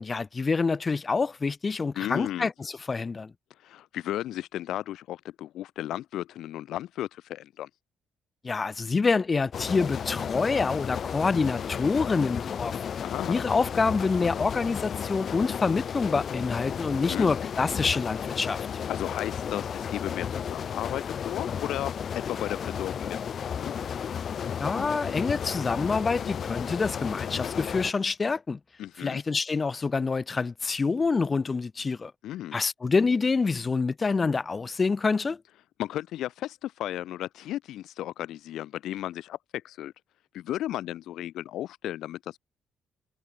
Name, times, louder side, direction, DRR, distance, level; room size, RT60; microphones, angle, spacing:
voice 1, 0.0-3.3 8.4-12.8 13.3-18.6 24.6-28.6 29.0-32.1 32.5-35.4, left 4 dB, 30° left, 5.5 m, -27 dB
voice 2, 1.9-2.5 3.6-7.7 13.0-13.4 16.9-17.3 18.9-23.7 28.8-29.2 32.2-32.6 35.8-39.9 40.3-42.4, left 13 dB, 80° left, 3.0 m, -34 dB
sound 1, 9.5-27.9, left 7 dB, 50° left, 1.7 m, -33 dB
cardioid pair, 105°, 0 cm